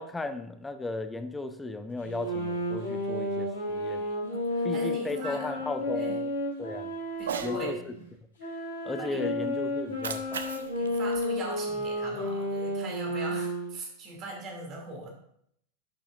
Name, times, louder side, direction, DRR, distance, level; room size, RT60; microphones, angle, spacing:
voice 1, 0.0-4.1 4.6-6.3 6.6-6.9 7.4-7.9 8.8-10.5, left 2 dB, 10° left, 9 dB, 0.7 m, -36 dB
sound 1, 2.0-7.7 8.4-13.8, left 1 dB, 70° left, 3.5 m, -32 dB
voice 2, 4.3-5.5 5.9-6.2 7.2-8.1 8.4-8.5 9.0-9.3 10.8-15.1, right 2 dB, 35° right, 0 dB, 2.6 m, -40 dB
Cat, 7.2-7.6 9.8-12.1, right 7 dB, 65° right, 0.6 m, -38 dB
11.5 x 7.0 x 2.5 m, 0.69 s
figure-of-eight pair, 90°, 0 cm